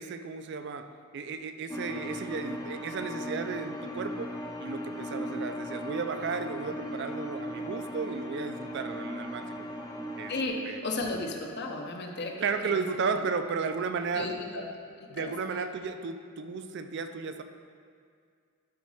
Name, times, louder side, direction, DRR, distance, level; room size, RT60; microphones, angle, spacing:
voice 1, 0.0-9.8 10.2-10.3 10.7-10.8 12.4-14.3 15.1-17.4, right 5 dB, 50° right, 9 dB, 0.4 m, -34 dB
sound 1, 1.7-10.4, equal, 15° left, 0.6 m, -37 dB
voice 2, 10.3-12.8 13.2-13.3 14.1-15.3, left 2 dB, 50° left, 2 dB, 0.8 m, -35 dB
12.0 x 4.1 x 4.8 m, 2.1 s
head